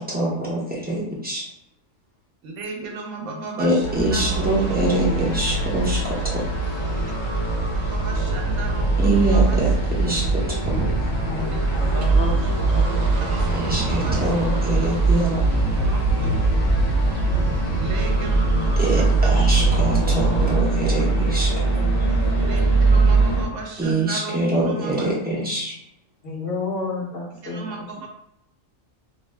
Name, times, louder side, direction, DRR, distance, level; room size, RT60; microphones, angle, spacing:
voice 1, 0.1-1.4 3.6-6.4 9.0-10.4 13.5-15.4 18.8-21.5 23.8-25.7, right 1 dB, 10° right, -5 dB, 0.4 m, -24 dB
voice 2, 2.4-4.8 6.9-7.0 7.9-9.9 13.3-13.5 13.8-14.2 15.8-16.4 16.8-17.2 17.7-18.4 19.0-19.1 22.3-22.6 22.9-25.1 27.4-28.1, right 3 dB, 70° right, 0 dB, 0.9 m, -35 dB
sound 1, 3.8-23.3, equal, 85° left, 1.0 m, -31 dB
sound 2, 3.9-23.4, right 3 dB, 40° left, 0.7 m, -22 dB
sound 3, 4.3-20.5, right 2 dB, 90° right, 0.3 m, -30 dB
voice 3, 4.9-5.5 6.0-6.1 11.1-13.6 13.9-14.3 14.6-14.7 18.1-20.8 21.1-21.2 21.4-22.1 26.2-27.6, left 2 dB, 55° left, -3 dB, 0.9 m, -33 dB
2.5 x 2.1 x 3.2 m, 0.77 s
omnidirectional pair, 1.3 m